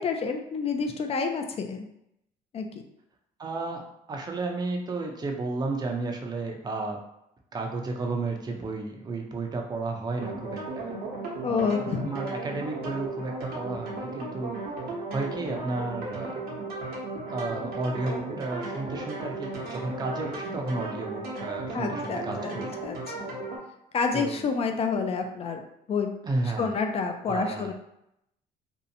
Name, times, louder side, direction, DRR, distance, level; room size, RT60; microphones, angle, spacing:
voice 1, 0.0-1.9 2.5-2.7 11.4-12.1 21.7-22.5 22.8-23.0 23.9-25.6 25.9-26.1 26.6-27.7, left 5 dB, 35° left, 5 dB, 0.4 m, -28 dB
voice 2, 3.4-7.0 7.5-11.0 11.5-14.6 15.1-16.4 17.3-22.7 24.1-24.4 26.2-26.7 27.3-27.7, right 3 dB, 25° right, 2 dB, 0.5 m, -32 dB
sound 1, 10.2-23.6, right 2 dB, 65° right, 0.8 m, -35 dB
2.7 x 2.1 x 2.6 m, 0.79 s
cardioid pair, 110°, 17 cm